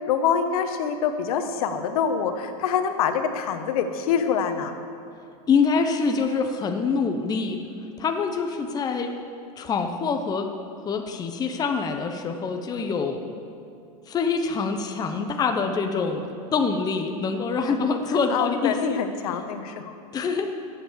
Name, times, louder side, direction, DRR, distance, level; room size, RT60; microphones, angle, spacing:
voice 1, 0.1-4.7 17.6-17.7 18.1-19.9, left 7 dB, 70° left, 7 dB, 1.3 m, -25 dB
voice 2, 5.5-7.6 8.0-9.1 9.6-10.5 10.8-13.2 14.1-16.2 16.5-19.0 20.1-20.5, left 5 dB, 20° left, 5 dB, 0.9 m, -25 dB
14.0 x 8.1 x 7.3 m, 2.5 s
supercardioid pair, 130°, 19 cm